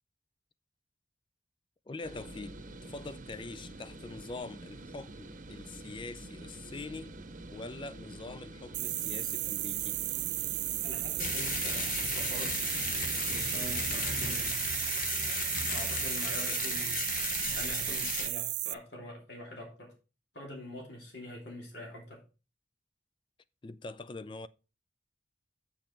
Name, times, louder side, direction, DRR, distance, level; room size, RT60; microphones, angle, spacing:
voice 1, 1.9-7.1 7.5-10.1 23.6-24.5, left 3 dB, 30° left, 0.4 m, -44 dB
sound 1, 2.0-14.5, right 2 dB, 50° right, 0.9 m, -47 dB
sound 2, 8.7-18.7, right 19 dB, 70° right, 0.4 m, -34 dB
voice 2, 10.8-12.6 13.3-14.6 15.7-17.0 17.5-19.9 20.3-22.2, left 1 dB, 80° left, 3.0 m, -44 dB
sound 3, 11.2-18.3, left 6 dB, 50° left, 0.9 m, -36 dB
7.3 x 7.2 x 4.4 m
head